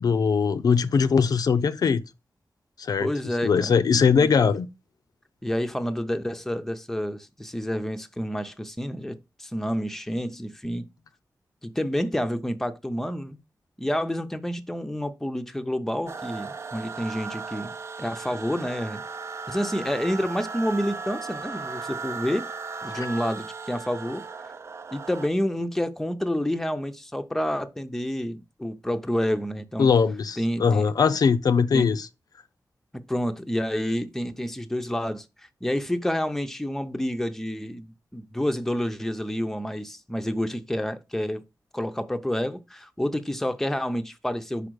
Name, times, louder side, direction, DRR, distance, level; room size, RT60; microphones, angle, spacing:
voice 1, 0.0-2.0 2.8-3.1 3.4-4.7 22.9-23.1 29.8-32.1, left 6 dB, 75° left, 0.5 m, -21 dB
voice 2, 3.0-3.7 4.2-4.3 5.4-10.9 11.6-13.4 13.8-17.7 18.0-19.0 19.5-22.5 22.8-24.2 24.9-29.9 30.4-30.9 31.7-31.9 32.9-41.4 41.7-44.7, equal, 5° left, 0.6 m, -29 dB
sound 1, 16.1-25.3, right 4 dB, 45° right, 0.6 m, -36 dB
5.4 x 5.0 x 6.2 m
wide cardioid pair, 175°, 7 cm